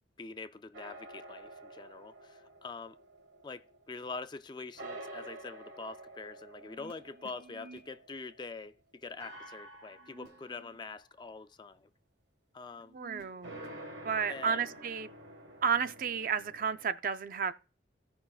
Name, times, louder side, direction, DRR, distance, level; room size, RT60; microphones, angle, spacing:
voice 1, 0.2-3.0 3.4-11.9 12.5-13.0 14.3-14.6, left 4 dB, 25° left, 0.3 m, -45 dB
sound 1, 0.7-4.4 4.8-8.6 9.2-11.0 13.4-16.9, right 1 dB, 80° right, 1.3 m, -49 dB
sound 2, 6.6-7.9 9.9-10.9 11.2-11.3 12.7-15.0, right 2 dB, 65° right, 2.4 m, -56 dB
voice 2, 12.9-13.5 14.0-15.1 15.6-17.5, right 6 dB, 50° right, 0.4 m, -32 dB
16.5 x 5.6 x 2.3 m
head